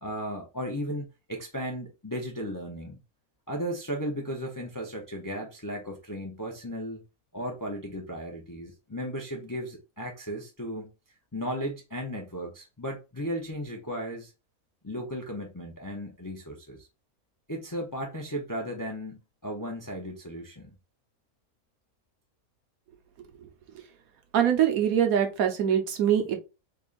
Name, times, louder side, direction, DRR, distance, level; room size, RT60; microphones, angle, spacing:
voice 1, 0.0-3.0 3.5-7.0 7.3-10.9 11.3-14.3 14.8-16.9 17.5-20.8, equal, 25° left, 0.5 m, -35 dB
voice 2, 24.3-26.4, right 9 dB, 70° right, 1.2 m, -23 dB
3.8 x 3.4 x 2.5 m
omnidirectional pair, 1.6 m